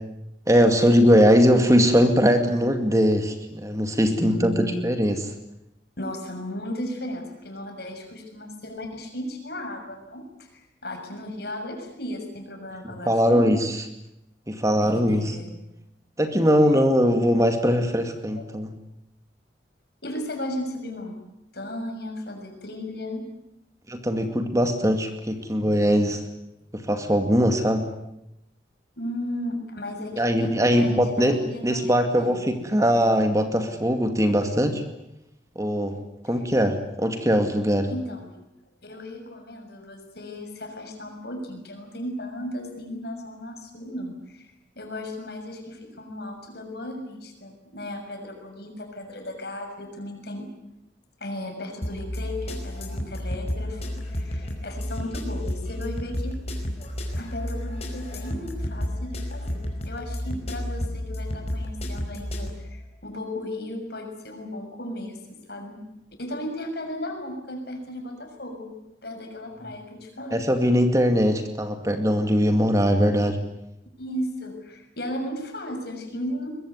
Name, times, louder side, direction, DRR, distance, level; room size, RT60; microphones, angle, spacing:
voice 1, 0.5-5.2 12.8-13.8 14.5-15.4 16.2-18.7 23.9-26.2 26.7-27.9 30.2-34.8 35.6-37.9 70.3-73.4, equal, 15° right, 6 dB, 2.2 m, -21 dB
voice 2, 4.2-5.0 6.0-13.6 14.8-15.5 18.4-18.5 20.0-21.2 21.5-23.2 29.0-32.6 37.9-38.3 38.8-44.5 44.7-50.5 51.2-56.4 57.1-65.8 66.2-68.7 69.0-70.4 74.0-76.5, left 1 dB, 60° left, 4 dB, 6.6 m, -35 dB
sound 1, 51.8-62.5, left 1 dB, 35° left, 5.2 m, -31 dB
23.0 x 22.0 x 9.6 m, 0.84 s
head